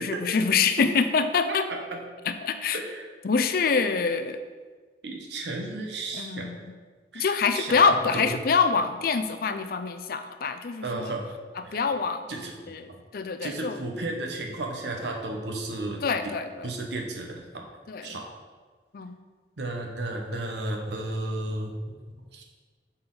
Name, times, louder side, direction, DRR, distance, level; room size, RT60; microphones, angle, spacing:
voice 1, 0.0-1.7 2.2-2.8 3.2-4.4 6.1-6.8 7.1-11.1 11.6-13.8 16.0-16.7 17.9-18.2 18.9-19.2, left 5 dB, 55° left, 9 dB, 0.4 m, -26 dB
voice 2, 1.5-2.0 2.7-3.1 5.0-6.5 7.1-8.4 10.8-11.3 11.6-11.8 12.3-13.0 13.4-16.0 16.6-17.7 18.0-18.3 19.6-21.8 22.3-22.4, right 2 dB, 75° right, 1 dB, 1.0 m, -33 dB
7.6 x 4.3 x 3.9 m, 1.4 s
head